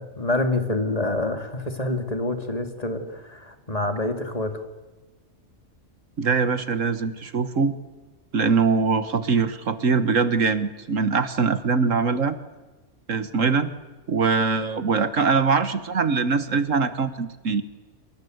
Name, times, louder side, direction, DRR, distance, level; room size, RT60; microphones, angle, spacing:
voice 1, 0.0-4.6, left 2 dB, 25° left, 6 dB, 2.8 m, -27 dB
voice 2, 6.2-7.8 8.3-12.4 13.1-13.7 14.1-17.6, right 5 dB, 65° right, 12 dB, 1.7 m, -22 dB
28.5 x 25.5 x 8.1 m, 1.2 s
omnidirectional pair, 1.4 m